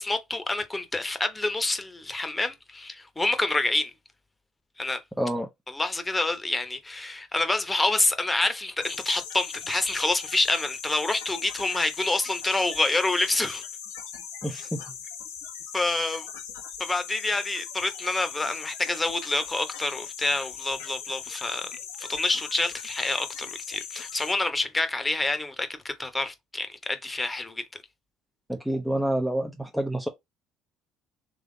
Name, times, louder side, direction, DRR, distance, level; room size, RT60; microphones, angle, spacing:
voice 1, 0.0-3.9 4.8-5.0 5.7-13.6 15.7-16.3 16.8-21.7 22.0-27.6, left 2 dB, 15° left, 1.1 m, -27 dB
voice 2, 5.2-5.5 14.4-14.8 28.5-30.1, right 1 dB, ahead, 0.8 m, -28 dB
sound 1, 8.8-24.3, left 8 dB, 80° left, 1.0 m, -39 dB
3.6 x 3.3 x 3.9 m
hypercardioid pair, 65°, 0 cm